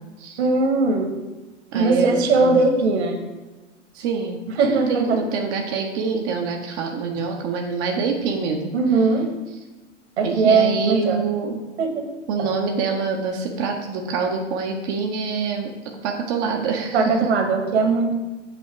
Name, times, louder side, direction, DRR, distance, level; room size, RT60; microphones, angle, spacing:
voice 1, 0.4-1.2 1.7-3.2 4.5-5.2 8.7-9.3 10.2-11.2 11.8-12.1 12.4-12.5 16.9-18.1, right 3 dB, 60° right, 4 dB, 1.0 m, -19 dB
voice 2, 1.7-2.6 3.9-8.7 10.2-11.6 12.3-17.1, right 5 dB, 20° right, 2 dB, 0.4 m, -26 dB
7.8 x 2.8 x 4.7 m, 1.2 s
figure-of-eight pair, 100°, 37 cm